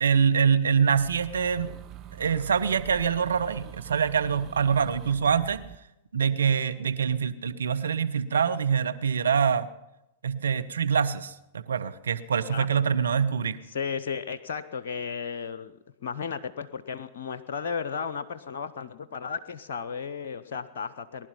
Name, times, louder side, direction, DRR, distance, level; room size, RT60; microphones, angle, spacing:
voice 1, 0.0-1.7 2.2-5.6 6.1-9.7 10.2-13.6, right 7 dB, 75° right, 11 dB, 0.8 m, -25 dB
sound 1, 0.9-5.8, right 11 dB, 35° right, 0.8 m, -44 dB
voice 2, 13.7-21.3, left 6 dB, 60° left, 13 dB, 0.7 m, -34 dB
19.5 x 11.5 x 5.7 m, 0.90 s
figure-of-eight pair, 100°, 0 cm